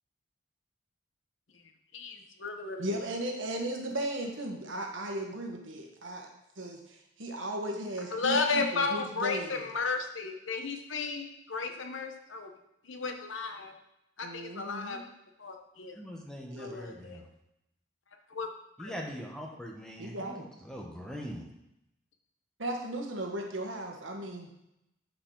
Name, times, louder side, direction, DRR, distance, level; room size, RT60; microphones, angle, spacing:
voice 1, 1.9-2.8 8.1-12.5 12.8-13.7 14.2-15.0 15.4-16.0 16.6-17.2 18.3-18.5 18.8-18.9, left 4 dB, 75° left, 5 dB, 1.0 m, -33 dB
voice 2, 2.8-6.3 6.6-9.7 14.2-15.0 16.5-16.7 20.0-20.4 22.6-24.5, right 1 dB, 70° right, 2 dB, 1.4 m, -36 dB
voice 3, 15.9-17.3 18.8-21.5, equal, 5° left, -1 dB, 1.0 m, -42 dB
11.0 x 4.9 x 3.9 m, 0.83 s
head